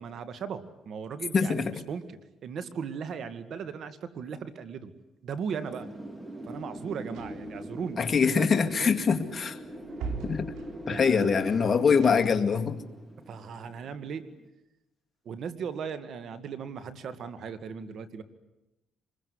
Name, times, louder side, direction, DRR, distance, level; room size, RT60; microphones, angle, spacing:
voice 1, 0.0-4.9 5.2-5.9 6.4-8.5 8.8-9.1 10.9-11.6 13.3-14.3 15.3-18.2, right 6 dB, 65° right, 11 dB, 2.1 m, -37 dB
voice 2, 1.3-1.7 8.0-9.6 10.2-10.5 10.9-12.8, left 6 dB, 40° left, 6 dB, 2.1 m, -24 dB
Wind, 5.6-14.3, equal, 15° right, 2.6 m, -42 dB
sound 1, 6.5-12.6, right 4 dB, 90° right, 3.6 m, -43 dB
25.0 x 21.5 x 9.8 m, 0.92 s
cardioid pair, 90°, 0 cm